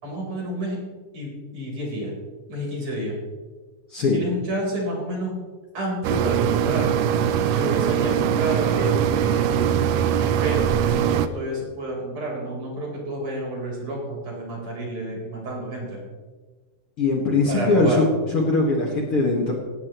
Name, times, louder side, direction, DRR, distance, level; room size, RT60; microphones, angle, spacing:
voice 1, 0.0-0.8 1.1-2.1 2.5-3.2 4.1-5.3 5.7-7.0 7.5-9.6 10.2-16.0 17.5-18.0, right 1 dB, 50° right, -2 dB, 5.5 m, -30 dB
sound 1, 6.0-11.3, right 9 dB, 85° right, 1.4 m, -21 dB
voice 2, 17.0-18.0 18.3-19.6, left 3 dB, 45° left, -1 dB, 2.3 m, -21 dB
18.0 x 16.5 x 3.1 m, 1.4 s
omnidirectional pair, 3.8 m